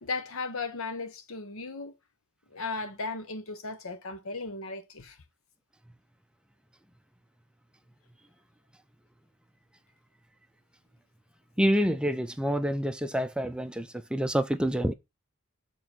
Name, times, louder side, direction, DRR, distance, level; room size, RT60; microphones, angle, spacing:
voice 1, 0.0-1.9 2.5-5.2, left 3 dB, 70° left, 1.1 m, -36 dB
voice 2, 11.6-14.9, equal, 5° right, 0.5 m, -27 dB
7.0 x 3.7 x 6.1 m
head